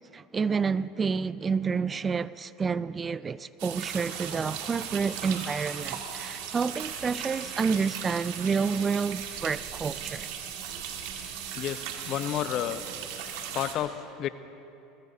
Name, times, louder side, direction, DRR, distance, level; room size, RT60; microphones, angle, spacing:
voice 1, 0.1-10.3, right 5 dB, 25° right, 0.3 m, -29 dB
sound 1, 3.6-13.7, right 8 dB, 75° right, 1.9 m, -37 dB
voice 2, 11.5-12.8 13.5-14.3, left 11 dB, 55° left, 0.7 m, -31 dB
23.0 x 20.5 x 2.8 m
hypercardioid pair, 90°, 0 cm